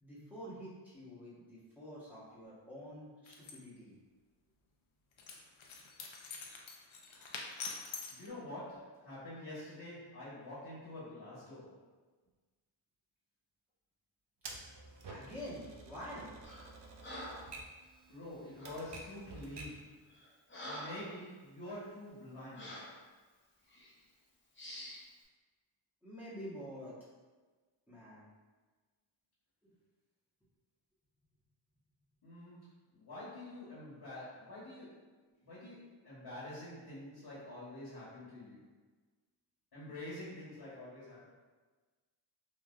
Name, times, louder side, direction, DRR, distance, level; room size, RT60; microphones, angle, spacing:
voice 1, 0.0-4.0 15.1-16.4 26.0-27.0 27.9-28.3 29.6-29.7, equal, 5° right, -10 dB, 1.1 m, -47 dB
sound 1, 3.3-3.5 5.2-8.3, left 4 dB, 70° left, 0.6 m, -45 dB
voice 2, 7.1-7.5 8.1-11.9 18.1-20.1 20.6-22.9 32.2-38.8 39.7-41.3, left 1 dB, 50° left, -10 dB, 1.2 m, -47 dB
Typewriter, 14.4-19.9, right 3 dB, 55° right, 0.5 m, -50 dB
Breathing, 16.4-16.7 17.0-17.5 18.6-18.8 19.5-19.7 20.1-21.1 21.6-21.8 22.6-23.0 23.7-23.9 24.6-25.0, equal, 25° left, 0.8 m, -47 dB
3.1 x 2.5 x 2.4 m, 1.3 s
wide cardioid pair, 65°, 50 cm